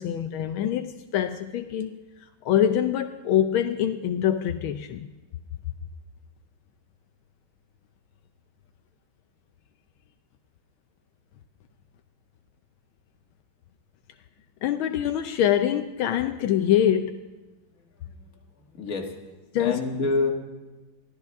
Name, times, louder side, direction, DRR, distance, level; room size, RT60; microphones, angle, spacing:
voice 1, 0.0-2.0 2.4-5.1 14.6-17.1 19.5-19.8, left 10 dB, 80° left, 7 dB, 1.5 m, -24 dB
voice 2, 18.7-19.1 19.6-20.3, left 3 dB, 45° left, 1 dB, 2.2 m, -27 dB
23.5 x 15.5 x 3.5 m, 1.2 s
omnidirectional pair, 2.2 m